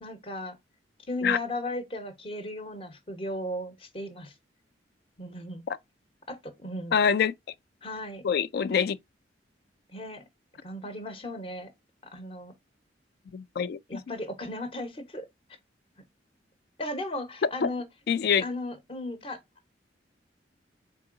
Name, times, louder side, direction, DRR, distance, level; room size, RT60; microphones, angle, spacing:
voice 1, 0.0-0.6 1.1-4.3 5.2-5.6 6.3-6.9 7.8-8.2 9.9-10.2 10.6-11.7 12.1-12.5 13.9-15.3 16.8-17.8 18.4-19.4, left 1 dB, 30° left, 0.8 m, -36 dB
voice 2, 6.9-7.3 8.2-9.0 13.3-14.2 17.6-17.7 18.1-18.4, left 7 dB, 55° left, 0.3 m, -25 dB
3.8 x 3.7 x 2.5 m
head